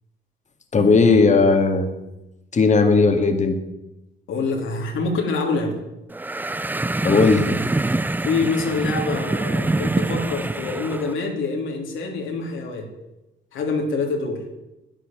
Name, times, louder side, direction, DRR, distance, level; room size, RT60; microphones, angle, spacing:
voice 1, 0.7-1.9 2.5-3.6 7.0-7.5, left 4 dB, 35° left, 6 dB, 2.0 m, -16 dB
voice 2, 4.3-5.8 8.2-12.9 13.5-14.4, left 3 dB, 80° left, 2 dB, 3.2 m, -25 dB
sound 1, 6.1-11.1, right 2 dB, 10° right, 0.4 m, -25 dB
11.0 x 10.0 x 8.8 m, 0.95 s
cardioid pair, 90°, 20 cm